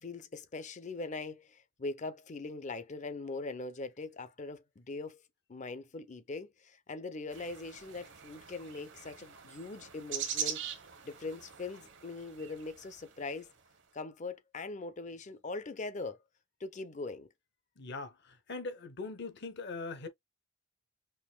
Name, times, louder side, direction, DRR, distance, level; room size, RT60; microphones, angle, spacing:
voice 1, 0.0-5.2 5.5-13.5 13.9-16.2 16.6-17.3, left 3 dB, 35° left, 0.6 m, -41 dB
sound 1, 7.3-13.5, right 9 dB, 60° right, 0.9 m, -42 dB
voice 2, 17.8-20.1, left 3 dB, 60° left, 0.9 m, -41 dB
5.6 x 2.6 x 2.2 m
head